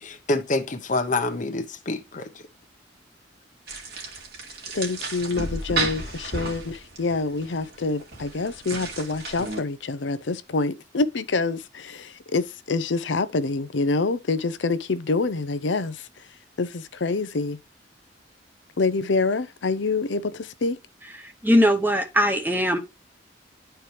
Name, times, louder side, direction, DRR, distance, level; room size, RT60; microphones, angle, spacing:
voice 1, 0.0-2.3, left 2 dB, 45° left, 1.0 m, -27 dB
sound 1, 3.7-9.6, right 3 dB, 60° right, 2.2 m, -33 dB
voice 2, 4.7-16.1 16.6-17.6 18.8-20.8, left 3 dB, 75° left, 0.6 m, -26 dB
voice 3, 21.2-22.8, equal, 10° right, 1.0 m, -20 dB
11.0 x 4.5 x 3.3 m
head